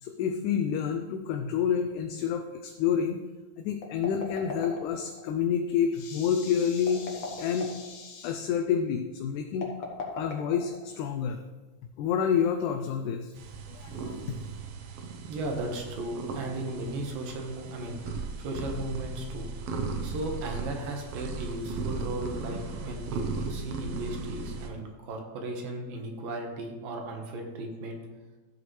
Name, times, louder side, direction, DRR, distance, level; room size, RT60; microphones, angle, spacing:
voice 1, 0.0-3.2 3.6-9.7 10.1-11.4 12.0-13.3 13.7-14.4, left 7 dB, 80° left, 5 dB, 1.9 m, -29 dB
sound 1, 3.7-5.2 6.8-7.9 9.5-11.1, left 3 dB, 50° left, 1.5 m, -38 dB
sound 2, 13.3-24.7, right 4 dB, 75° right, 1.4 m, -37 dB
voice 2, 15.3-18.0 18.4-19.5 20.0-28.0, right 2 dB, 90° right, 2 dB, 3.1 m, -36 dB
13.5 x 8.0 x 3.3 m, 1.2 s
omnidirectional pair, 3.8 m